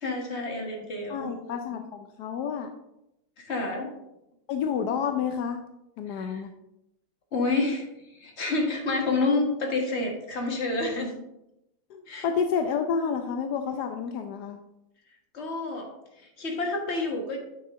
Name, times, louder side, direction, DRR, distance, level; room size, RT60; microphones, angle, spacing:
voice 1, 0.0-1.3 3.4-3.9 6.1-6.4 7.3-11.1 12.1-12.3 15.3-17.4, left 3 dB, 35° left, 1 dB, 1.6 m, -29 dB
voice 2, 1.1-2.7 4.5-5.6 6.0-6.5 11.9-14.6, left 6 dB, 75° left, 6 dB, 0.9 m, -29 dB
9.5 x 6.1 x 3.6 m, 0.87 s
omnidirectional pair, 2.4 m